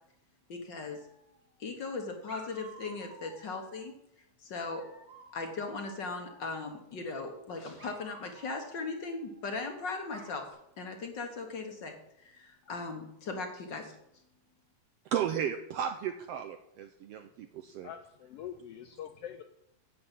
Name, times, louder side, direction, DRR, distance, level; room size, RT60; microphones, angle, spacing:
voice 1, 0.5-1.0 1.6-3.9 4.4-4.8 5.3-10.5 10.8-12.0 12.2-13.9, left 3 dB, 50° left, 4 dB, 1.6 m, -38 dB
Dog, 0.8-1.6 2.3-3.9 4.7-6.8 7.8-9.7 10.1-10.5, right 3 dB, 25° right, 1.2 m, -53 dB
voice 2, 15.0-17.9, right 9 dB, 80° right, 7 dB, 1.4 m, -34 dB
voice 3, 17.8-19.4, left 9 dB, 90° left, 8 dB, 1.3 m, -44 dB
8.6 x 7.4 x 8.2 m, 0.78 s
omnidirectional pair, 3.4 m